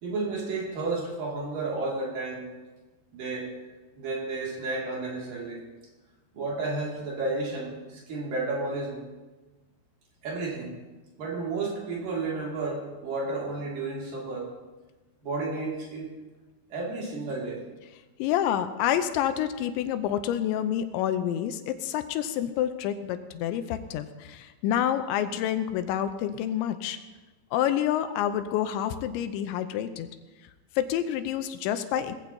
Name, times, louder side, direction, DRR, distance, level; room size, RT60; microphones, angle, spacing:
voice 1, 0.0-2.5 3.1-3.5 4.0-5.6 6.3-9.0 10.2-10.7 11.2-14.5 15.2-16.1 16.7-17.6, right 3 dB, 50° right, -3 dB, 3.8 m, -32 dB
voice 2, 18.2-27.0 27.5-30.1 30.8-32.1, left 10 dB, 90° left, 9 dB, 3.0 m, -28 dB
20.5 x 15.0 x 2.9 m, 1.2 s
omnidirectional pair, 5.2 m